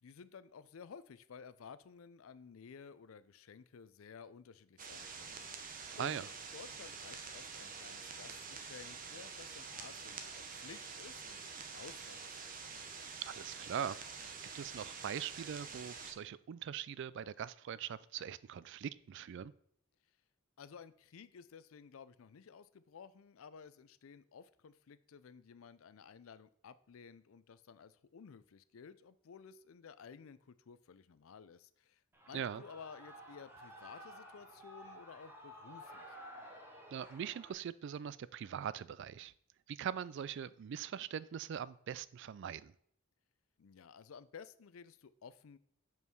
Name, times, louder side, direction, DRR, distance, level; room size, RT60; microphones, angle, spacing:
voice 1, 0.0-5.4 6.0-6.2 6.5-12.4 20.6-32.0 32.3-36.2 43.6-45.6, left 6 dB, 75° left, 15 dB, 0.4 m, -54 dB
sound 1, 4.8-16.1, right 5 dB, 40° right, 0.9 m, -47 dB
voice 2, 13.2-19.5 32.3-32.6 36.9-39.3 39.7-42.7, right 8 dB, 55° right, 18 dB, 0.3 m, -42 dB
Shout / Cheering, 32.1-37.5, equal, 10° right, 1.1 m, -53 dB
5.5 x 4.6 x 6.2 m, 0.64 s
head